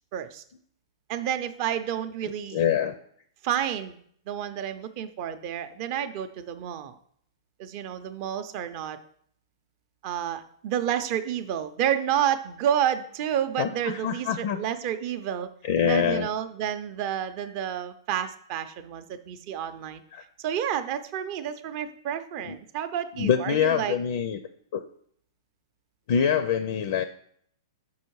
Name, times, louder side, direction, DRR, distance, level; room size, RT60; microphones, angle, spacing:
voice 1, 0.1-0.4 1.1-2.6 3.4-4.0 4.3-6.9 7.6-9.0 10.0-15.5 15.8-20.0 20.4-24.0, right 10 dB, 35° right, 10 dB, 0.5 m, -30 dB
voice 2, 2.2-3.0 13.6-14.6 15.6-16.3 20.1-20.2 22.4-22.5 23.2-24.4 24.7-24.8 26.1-27.0, left 8 dB, 50° left, 10 dB, 0.5 m, -25 dB
6.3 x 5.5 x 4.6 m, 0.63 s
hypercardioid pair, 155°, 2 cm